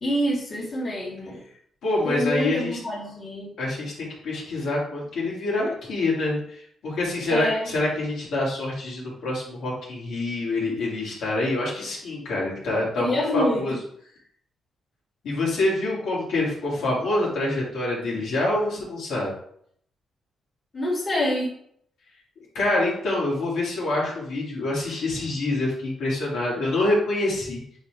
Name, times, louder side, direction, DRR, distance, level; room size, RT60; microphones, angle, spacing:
voice 1, 0.0-1.4 2.0-3.5 7.3-7.6 13.0-13.6 20.7-21.5, left 1 dB, 25° left, -5 dB, 2.4 m, -26 dB
voice 2, 1.8-2.8 3.6-13.8 15.2-19.3 22.4-27.6, left 2 dB, 75° left, -5 dB, 2.6 m, -26 dB
7.9 x 4.2 x 3.5 m, 0.66 s
cardioid pair, 140°, 0 cm